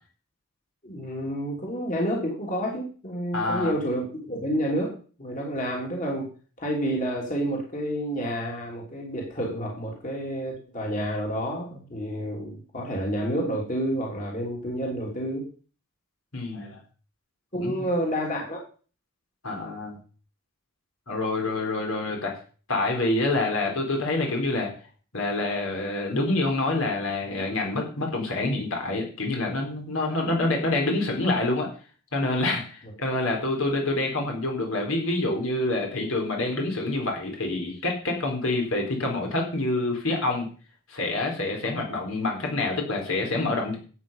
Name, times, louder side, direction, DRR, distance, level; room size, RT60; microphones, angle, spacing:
voice 1, 0.8-4.9 5.2-6.3 6.6-15.5 17.5-18.6, equal, 35° left, -1 dB, 3.3 m, -29 dB
voice 2, 3.3-3.7 16.3-16.8 17.5-17.7 19.4-20.0 21.1-22.3 22.7-24.7 25.1-31.7 32.1-40.5 40.9-43.8, left 2 dB, 70° left, 1 dB, 4.2 m, -27 dB
12.5 x 8.6 x 5.6 m, 0.39 s
head